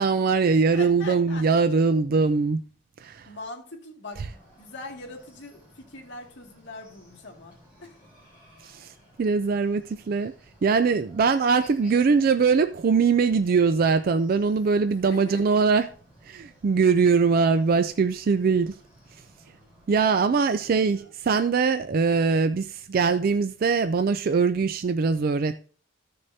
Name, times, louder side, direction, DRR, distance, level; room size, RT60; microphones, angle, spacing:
voice 1, 0.0-2.6 3.0-3.3 8.6-10.3 10.6-15.9 16.2-18.8 19.9-25.6, right 5 dB, 50° right, 0.3 m, -22 dB
voice 2, 0.7-1.5 3.3-7.5 7.8-8.0 15.0-15.7 20.2-21.1, left 2 dB, 60° left, 2.1 m, -42 dB
Chicken rooster, 4.1-20.0, equal, 10° right, 4.0 m, -56 dB
14.5 x 6.5 x 2.7 m
head